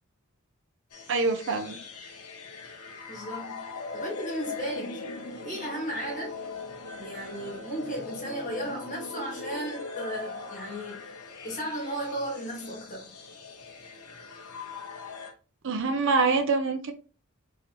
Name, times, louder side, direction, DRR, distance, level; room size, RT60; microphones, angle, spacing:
sound 1, 0.9-15.3, left 3 dB, 85° left, 0.9 m, -40 dB
voice 1, 1.1-1.8 15.6-16.9, right 4 dB, 60° right, 0.6 m, -25 dB
voice 2, 3.1-3.7 3.9-5.0 5.4-6.4 7.0-11.1 11.4-13.1, right 1 dB, 35° left, 1.7 m, -35 dB
3.7 x 3.2 x 3.0 m
head